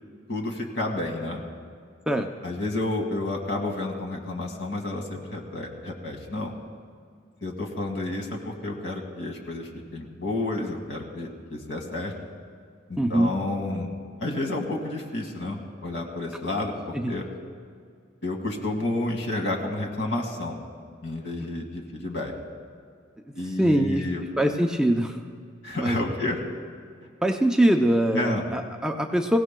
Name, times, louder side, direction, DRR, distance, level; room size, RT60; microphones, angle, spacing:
voice 1, 0.3-1.4 2.4-6.5 7.4-12.1 12.9-13.9 14.2-17.3 18.2-20.6 21.0-22.3 23.4-24.2 25.6-26.4 28.1-28.4, left 2 dB, 70° left, 1 dB, 2.0 m, -30 dB
voice 2, 13.0-13.3 16.9-17.1 23.6-24.0 24.4-25.2 25.7-26.0 27.2-29.4, right 1 dB, 5° right, 3 dB, 0.5 m, -22 dB
25.5 x 16.0 x 2.3 m, 2.1 s
head